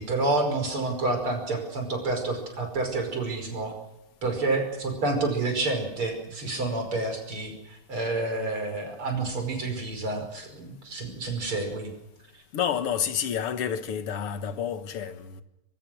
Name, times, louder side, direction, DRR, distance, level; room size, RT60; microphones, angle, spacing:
voice 1, 0.0-3.7 4.2-11.9, right 2 dB, 75° right, 6.1 m, -29 dB
voice 2, 12.5-15.4, left 8 dB, 90° left, 2.4 m, -29 dB
24.5 x 23.0 x 6.3 m
omnidirectional pair, 2.4 m